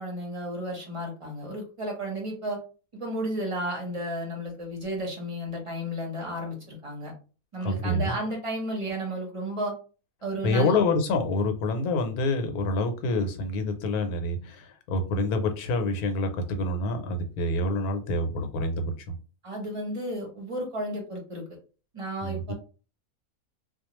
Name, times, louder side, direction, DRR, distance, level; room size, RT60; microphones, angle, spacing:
voice 1, 0.0-2.6 2.9-7.1 7.5-9.8 10.2-10.8 19.4-21.4 21.9-22.5, right 1 dB, 30° right, 0 dB, 0.6 m, -33 dB
voice 2, 7.6-8.2 10.4-18.9 22.2-22.5, left 2 dB, 90° left, 6 dB, 1.1 m, -27 dB
2.3 x 2.2 x 3.0 m, 0.35 s
omnidirectional pair, 1.5 m